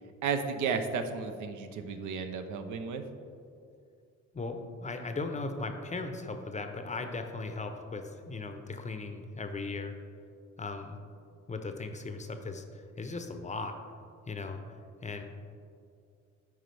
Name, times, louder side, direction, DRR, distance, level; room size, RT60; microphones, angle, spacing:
voice 1, 0.2-3.0, right 5 dB, 75° right, 7 dB, 0.7 m, -33 dB
voice 2, 4.3-10.0 10.6-11.0 11.5-13.8 14.3-14.6 15.0-15.2, left 3 dB, 25° left, 6 dB, 0.6 m, -37 dB
9.2 x 4.8 x 3.3 m, 2.4 s
cardioid pair, 90°, 30 cm